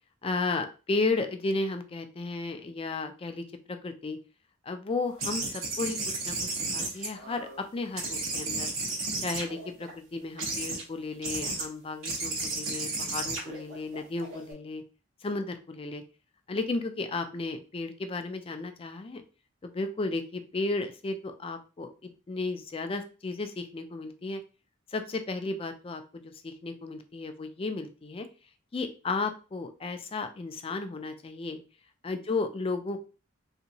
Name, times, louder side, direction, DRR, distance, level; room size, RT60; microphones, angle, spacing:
voice 1, 0.2-4.2 4.6-6.0 6.3-8.7 9.2-14.8 15.2-16.0 16.5-19.2 19.6-24.4 24.9-28.3 28.7-31.6 32.0-33.0, left 3 dB, 30° left, 7 dB, 0.4 m, -34 dB
sound 1, 5.2-7.6 8.0-9.9 10.4-10.8 11.2-11.6 12.0-14.5, right 3 dB, 80° right, 1.1 m, -33 dB
3.4 x 2.9 x 2.7 m, 0.34 s
head